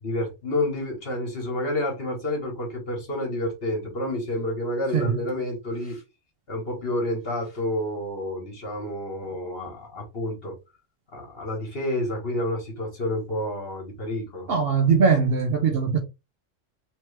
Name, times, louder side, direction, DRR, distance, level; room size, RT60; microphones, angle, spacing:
voice 1, 0.0-6.0 6.5-10.5 11.1-14.5, left 1 dB, 50° left, 1.5 m, -29 dB
voice 2, 14.5-16.0, right 5 dB, 60° right, 0.7 m, -21 dB
3.2 x 2.9 x 3.2 m
omnidirectional pair, 1.3 m